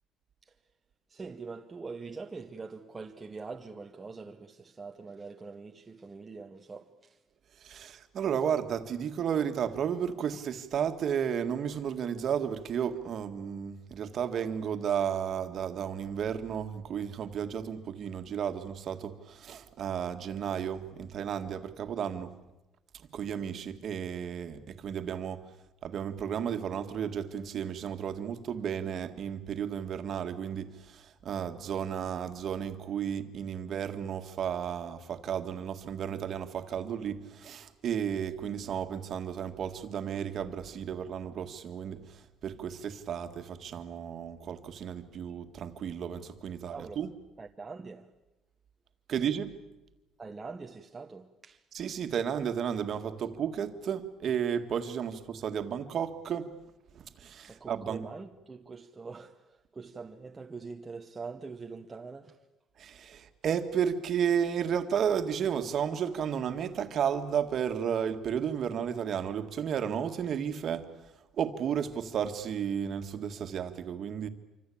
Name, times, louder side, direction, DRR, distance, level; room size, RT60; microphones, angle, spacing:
voice 1, 1.1-7.2 46.7-47.1 47.4-48.1 50.2-51.6 57.4-62.4, right 4 dB, 15° right, 1.0 m, -44 dB
voice 2, 7.6-22.4 22.9-25.5 25.8-47.1 49.1-49.6 51.7-56.5 56.9-58.1 62.8-70.9 71.4-74.3, right 8 dB, 40° right, 1.8 m, -33 dB
27.0 x 25.0 x 8.6 m
cardioid pair, 175°, 0 cm